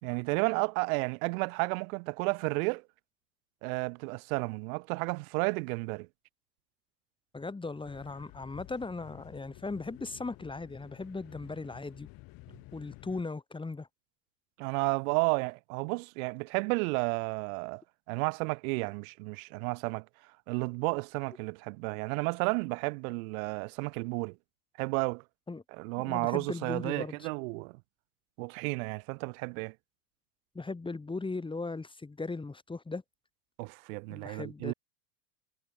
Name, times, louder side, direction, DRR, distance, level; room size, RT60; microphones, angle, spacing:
voice 1, 0.0-2.8 3.6-6.1 14.6-17.8 18.1-20.1 20.5-24.4 24.8-25.2 25.7-27.8 28.4-29.7 33.6-34.7, right 30 dB, 60° right, 4.5 m, -32 dB
voice 2, 7.3-12.1 12.7-13.9 25.5-25.6 26.0-27.3 30.5-33.0 34.1-34.7, left 3 dB, 10° left, 4.4 m, -38 dB
sound 1, 7.8-13.2, left 20 dB, 45° left, 4.1 m, -52 dB
hypercardioid pair, 120°, 48 cm